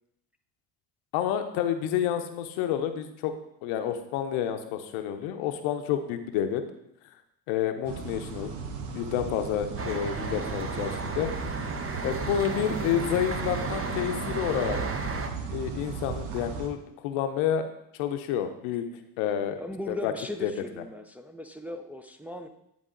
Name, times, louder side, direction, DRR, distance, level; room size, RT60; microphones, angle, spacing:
voice 1, 1.1-3.3 3.6-6.6 7.5-8.5 8.9-11.3 12.0-14.8 15.5-16.8 17.0-17.7 18.0-18.9 19.2-19.6 19.9-20.1 20.4-20.5, left 9 dB, 80° left, 8 dB, 0.8 m, -29 dB
sound 1, 7.8-16.7, right 5 dB, 80° right, 1.1 m, -36 dB
sound 2, 9.8-15.3, right 4 dB, 30° right, 0.9 m, -34 dB
voice 2, 19.6-22.5, left 1 dB, 5° right, 5 dB, 0.5 m, -38 dB
10.0 x 3.6 x 3.8 m, 0.80 s
hypercardioid pair, 60°, 48 cm